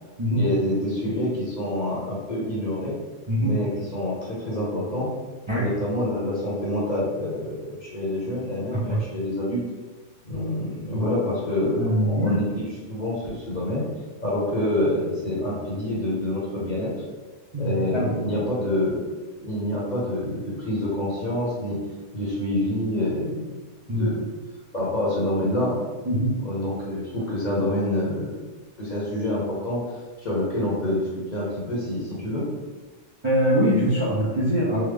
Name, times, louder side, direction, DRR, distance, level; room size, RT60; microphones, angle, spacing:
voice 1, 0.3-2.9 3.4-5.1 5.6-9.6 10.2-13.8 14.2-16.9 17.6-19.0 19.4-21.8 22.1-23.4 23.8-24.2 24.7-25.8 26.4-28.5 28.8-32.5, left 1 dB, 45° left, -6 dB, 0.8 m, -27 dB
voice 2, 11.8-12.4 17.5-18.1 23.9-24.1 26.0-26.3 33.2-34.8, equal, 35° right, -8 dB, 0.5 m, -23 dB
3.5 x 2.0 x 3.2 m, 1.3 s
omnidirectional pair, 1.2 m